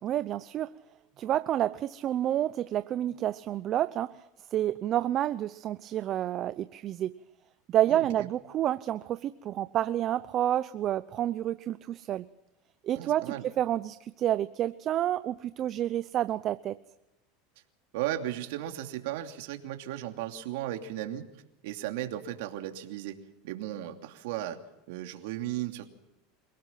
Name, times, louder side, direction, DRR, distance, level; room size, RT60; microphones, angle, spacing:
voice 1, 0.0-0.7 1.2-4.2 4.5-7.1 7.7-12.2 12.8-16.8, right 12 dB, 40° right, 13 dB, 0.7 m, -29 dB
voice 2, 7.9-8.3 13.0-13.5 17.9-21.3 21.6-24.6 24.9-25.9, right 13 dB, 75° right, 5 dB, 2.8 m, -36 dB
28.0 x 18.0 x 5.9 m, 0.96 s
supercardioid pair, 125°, 0 cm